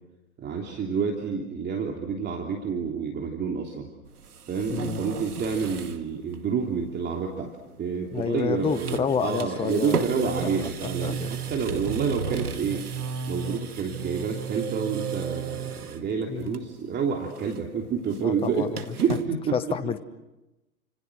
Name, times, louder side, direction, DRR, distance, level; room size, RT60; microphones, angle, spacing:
voice 1, 0.4-3.9 4.5-7.5 7.8-12.9 13.3-19.6, right 6 dB, 25° right, 1 dB, 3.2 m, -29 dB
sound 1, 4.0-6.0 6.3-6.4 8.1-8.4 8.7-16.0 16.5-16.9 17.1-19.3, right 6 dB, 85° right, 2.3 m, -34 dB
voice 2, 4.7-5.0 8.1-10.0 10.8-11.3 16.3-16.7 18.2-18.8 19.5-20.0, left 7 dB, 10° left, 12 dB, 1.0 m, -29 dB
30.0 x 27.5 x 6.3 m, 1.0 s
hypercardioid pair, 110°, 44 cm